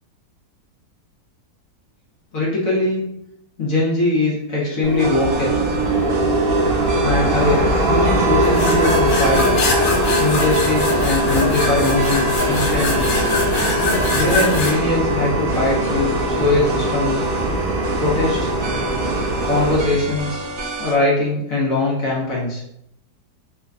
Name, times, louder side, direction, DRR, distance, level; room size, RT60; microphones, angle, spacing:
voice 1, 2.3-3.0 3.6-5.6 7.0-9.6 10.2-13.1 14.1-17.2 18.0-18.5 19.4-20.4 20.8-22.6, left 2 dB, 55° left, -5 dB, 1.1 m, -21 dB
sound 1, 4.8-19.8, right 1 dB, 90° right, 0.5 m, -20 dB
sound 2, 5.0-20.9, right 2 dB, 65° right, 0.8 m, -30 dB
sound 3, 8.4-14.7, left 3 dB, 80° left, 1.4 m, -24 dB
3.3 x 2.1 x 3.6 m, 0.77 s
omnidirectional pair, 2.0 m